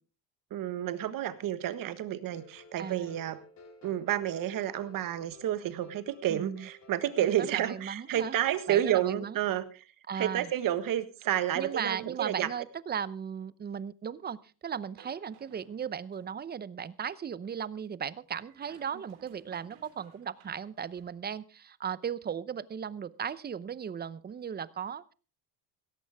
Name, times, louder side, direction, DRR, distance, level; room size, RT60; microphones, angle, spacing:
voice 1, 0.5-3.4 3.8-9.8 10.1-12.5, right 11 dB, 55° right, 12 dB, 1.5 m, -30 dB
sound 1, 2.3-8.6, left 2 dB, 45° left, 4.7 m, -55 dB
voice 2, 2.8-3.2 6.3-6.7 7.4-8.4 8.7-9.4 10.1-10.5 11.5-14.4 14.6-25.1, right 7 dB, 25° right, 18 dB, 0.7 m, -36 dB
sound 2, 15.0-16.5 18.3-21.2, right 7 dB, 85° right, 3.7 m, -59 dB
17.0 x 14.0 x 3.5 m, 0.34 s
cardioid pair, 120°, 40 cm